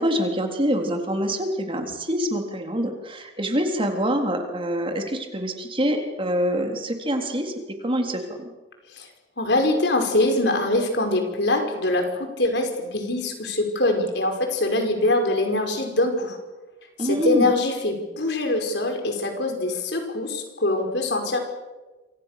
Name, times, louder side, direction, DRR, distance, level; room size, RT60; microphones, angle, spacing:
voice 1, 0.0-7.5 7.8-8.2 17.0-17.5, equal, 30° right, 4 dB, 3.7 m, -25 dB
voice 2, 9.4-16.4 17.0-21.4, left 2 dB, 65° left, 4 dB, 5.4 m, -23 dB
28.0 x 26.0 x 6.8 m, 1.2 s
head